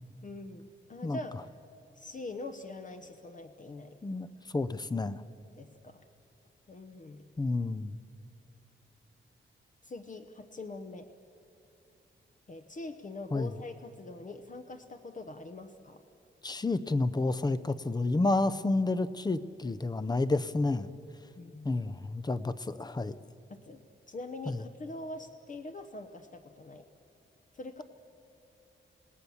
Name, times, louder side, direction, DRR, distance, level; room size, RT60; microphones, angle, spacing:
voice 1, 0.2-1.3 1.9-4.0 5.6-6.0 6.7-7.2 9.8-11.1 12.5-16.0 21.4-21.8 23.5-23.8 24.1-26.8 27.5-27.8, left 2 dB, 40° left, 6 dB, 0.9 m, -43 dB
voice 2, 4.5-5.2 7.4-8.0 13.3-13.5 16.4-20.9 21.6-23.2 24.5-24.6, left 2 dB, 20° left, 15 dB, 0.6 m, -30 dB
29.0 x 18.0 x 7.1 m, 2.8 s
wide cardioid pair, 165°, 21 cm